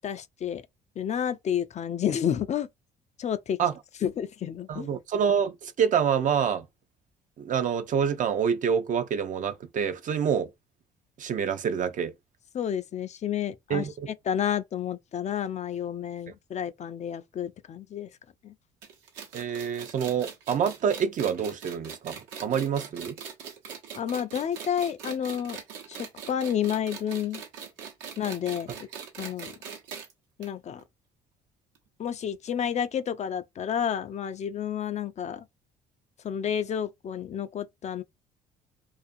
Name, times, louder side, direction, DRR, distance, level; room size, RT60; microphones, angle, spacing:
voice 1, 0.0-0.7 1.0-2.7 3.2-3.6 4.0-4.9 12.5-13.9 14.3-18.1 18.4-18.5 23.9-25.6 25.9-27.4 28.2-28.7 29.2-29.5 30.4-30.8 32.0-35.4 36.2-38.0, left 9 dB, 40° left, 0.4 m, -30 dB
voice 2, 4.7-6.7 7.4-10.5 11.2-12.1 13.7-14.1 19.3-23.2, right 7 dB, 45° right, 0.5 m, -27 dB
sound 1, 18.8-30.1 30.4-30.5 30.8-30.9 31.7-31.8, right 6 dB, 75° right, 0.8 m, -41 dB
2.4 x 2.4 x 2.5 m
hypercardioid pair, 60°, 18 cm